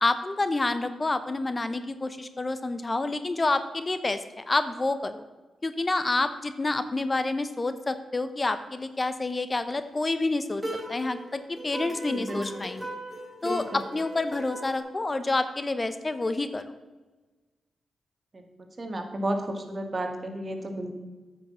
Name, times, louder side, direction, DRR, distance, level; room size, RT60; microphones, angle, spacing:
voice 1, 0.0-5.2 5.6-10.6 10.9-12.9 13.4-16.7, left 2 dB, 30° left, 11 dB, 0.7 m, -28 dB
sound 1, 10.6-14.8, right 1 dB, 10° right, 3.5 m, -38 dB
voice 2, 12.1-12.6 13.4-13.6 18.3-18.5 18.8-20.9, right 1 dB, 40° right, 4 dB, 1.9 m, -32 dB
9.3 x 6.2 x 7.5 m, 1.3 s
cardioid pair, 55°, 0 cm